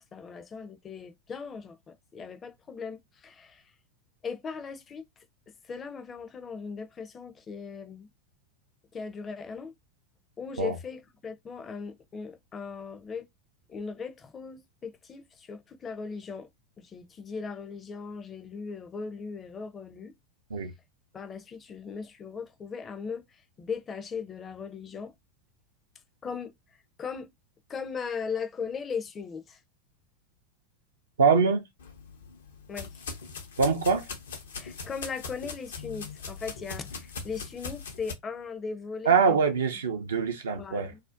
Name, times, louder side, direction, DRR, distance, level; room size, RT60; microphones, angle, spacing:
voice 1, 0.0-3.6 4.2-5.0 5.6-8.1 8.9-9.7 10.4-13.3 13.7-16.5 16.8-20.1 21.1-25.1 26.2-26.5 27.0-27.3 27.7-29.6 32.7-33.0 34.6-39.4 40.5-41.0, left 5 dB, 25° left, 0.5 m, -38 dB
voice 2, 31.2-31.6 33.6-34.0 39.1-40.9, right 5 dB, 80° right, 0.4 m, -23 dB
sound 1, 31.8-38.1, left 5 dB, 75° left, 0.5 m, -41 dB
2.4 x 2.1 x 2.5 m
figure-of-eight pair, 90°, 0 cm